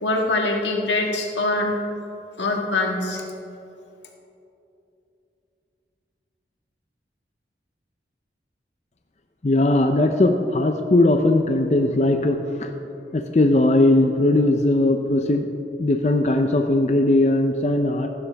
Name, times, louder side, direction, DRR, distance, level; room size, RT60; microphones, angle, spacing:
voice 1, 0.0-1.8 2.4-3.2, left 2 dB, 90° left, 1 dB, 1.6 m, -23 dB
voice 2, 9.4-12.7 13.1-15.4 15.8-18.1, left 2 dB, 40° left, 5 dB, 0.5 m, -19 dB
15.5 x 11.5 x 3.4 m, 2.8 s
head